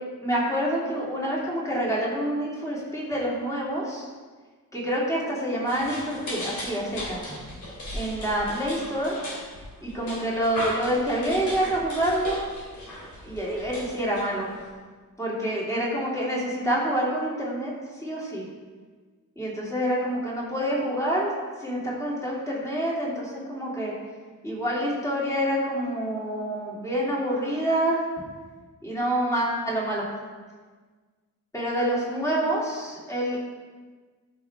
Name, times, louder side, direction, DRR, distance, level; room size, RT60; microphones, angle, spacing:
voice 1, 0.2-4.1 4.7-7.2 7.9-9.2 9.8-12.5 13.2-14.6 15.2-17.7 18.0-18.4 19.4-21.3 21.6-23.9 24.4-28.0 28.8-30.1 31.5-33.4, right 1 dB, 10° left, -6 dB, 2.6 m, -27 dB
sound 1, 5.6-14.7, left 1 dB, 60° left, 3.2 m, -37 dB
14.0 x 6.1 x 3.5 m, 1.4 s
wide cardioid pair, 180°, 32 cm